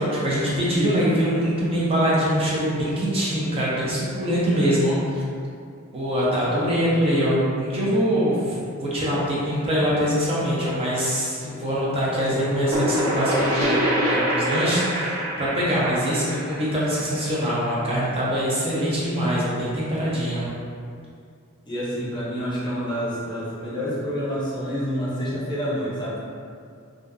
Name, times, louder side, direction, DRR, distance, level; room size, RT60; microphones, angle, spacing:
voice 1, 0.0-5.2 5.9-20.5, equal, 25° right, -7 dB, 0.4 m, -23 dB
sound 1, 12.3-17.8, equal, 75° right, 1.0 m, -25 dB
voice 2, 21.7-26.2, equal, 20° left, -9 dB, 0.6 m, -28 dB
2.5 x 2.3 x 2.2 m, 2.3 s
head